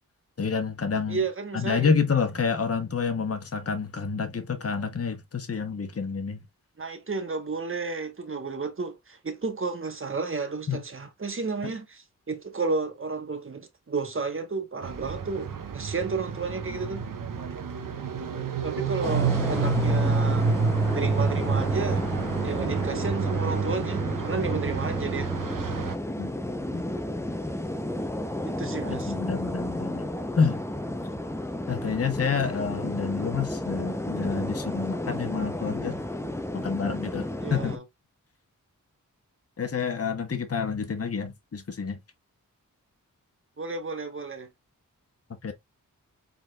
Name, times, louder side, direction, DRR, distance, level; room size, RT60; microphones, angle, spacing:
voice 1, 0.4-1.2 1.5-6.4 10.7-10.8 11.6-11.7 26.2-26.3 26.7-27.0 28.9-30.1 30.3-30.6 31.7-36.0 36.5-37.7 39.6-42.0 45.4-45.5, left 5 dB, 45° left, 1.0 m, -28 dB
voice 2, 1.1-1.9 6.8-17.0 18.6-20.5 20.9-22.1 22.4-25.3 28.4-29.1 37.4-37.8 43.6-44.5, right 4 dB, 40° right, 1.3 m, -32 dB
sound 1, 14.8-25.9, right 5 dB, 75° right, 0.9 m, -28 dB
sound 2, 19.0-37.8, left 1 dB, 10° left, 0.7 m, -32 dB
4.9 x 4.0 x 2.4 m
wide cardioid pair, 75°, 33 cm